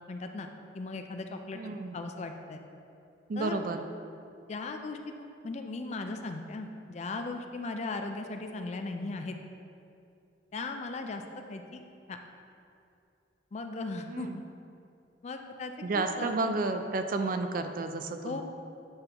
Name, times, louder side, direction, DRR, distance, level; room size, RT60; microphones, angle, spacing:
voice 1, 0.1-0.5 0.7-1.6 1.9-2.6 3.4-3.6 4.5-9.3 10.5-11.2 11.5-11.8 12.1-12.2 13.5-14.3 15.2-16.5 18.2-18.4, left 3 dB, 40° left, 5 dB, 0.4 m, -37 dB
voice 2, 1.5-2.0 3.3-3.8 14.1-14.4 15.8-18.4, right 3 dB, 50° right, 7 dB, 0.4 m, -31 dB
7.9 x 5.2 x 2.9 m, 2.6 s
head